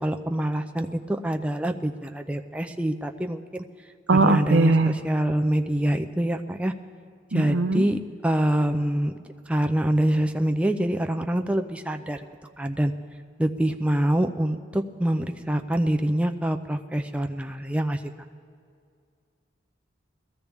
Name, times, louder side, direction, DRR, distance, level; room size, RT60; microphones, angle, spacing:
voice 1, 0.0-3.6 4.1-6.7 7.3-9.1 9.5-12.2 12.6-12.9 13.4-18.0, right 1 dB, 5° right, 6 dB, 0.5 m, -25 dB
voice 2, 4.1-5.0 7.3-7.8, right 3 dB, 80° right, 8 dB, 0.6 m, -20 dB
21.5 x 14.5 x 3.5 m, 2.2 s
head